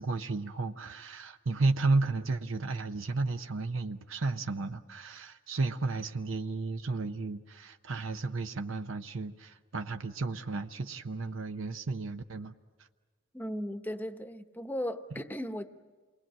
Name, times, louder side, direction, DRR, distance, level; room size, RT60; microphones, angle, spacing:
voice 1, 0.0-12.5, right 3 dB, 80° right, 0.8 m, -33 dB
voice 2, 13.3-15.7, equal, 10° left, 0.9 m, -36 dB
28.5 x 21.0 x 7.6 m
head